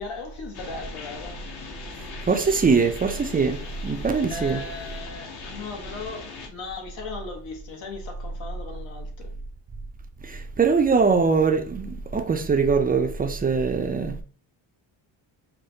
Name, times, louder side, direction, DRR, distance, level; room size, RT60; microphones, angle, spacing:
voice 1, 0.0-1.4 4.3-9.3, left 3 dB, 75° left, 1.3 m, -37 dB
sound 1, 0.5-6.5, left 4 dB, 55° left, 1.1 m, -40 dB
voice 2, 2.3-4.6 10.3-14.1, right 5 dB, 20° right, 0.4 m, -22 dB
4.9 x 2.3 x 2.7 m
cardioid pair, 105°, 46 cm